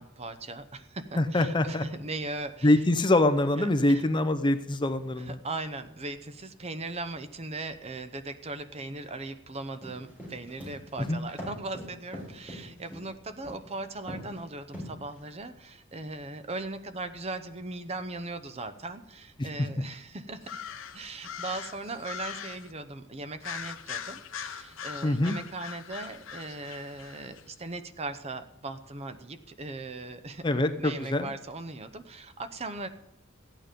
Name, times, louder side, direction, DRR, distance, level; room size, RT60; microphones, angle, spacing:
voice 1, 0.0-2.9 3.5-4.1 5.2-20.5 20.9-30.4 30.8-32.9, right 2 dB, 30° right, 10 dB, 0.7 m, -39 dB
voice 2, 1.2-1.8 2.6-5.4 11.1-11.2 25.0-25.4 30.4-31.3, left 1 dB, 25° left, 10 dB, 0.6 m, -24 dB
sound 1, 9.8-13.1 13.4-13.8 14.1-14.4 14.7-15.3, equal, 10° right, 4.6 m, -40 dB
sound 2, 20.4-22.7 23.4-27.4, left 8 dB, 70° left, 0.8 m, -41 dB
14.5 x 9.0 x 5.1 m, 0.80 s
head